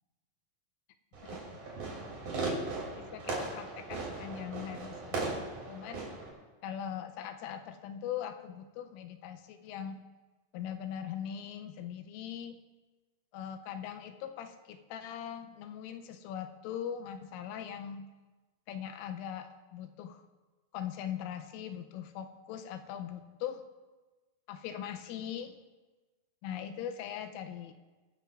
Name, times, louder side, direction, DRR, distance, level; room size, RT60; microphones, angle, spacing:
Fireworks, 1.1-6.3, right 3 dB, 45° right, 3.6 m, -38 dB
voice 1, 3.0-5.3 5.7-6.1 6.6-10.0 10.5-12.6 13.3-18.1 18.7-20.2 20.7-23.6 24.5-25.6 26.4-27.7, left 9 dB, 85° left, 7 dB, 3.1 m, -41 dB
24.0 x 11.5 x 2.5 m, 1.3 s
omnidirectional pair, 5.8 m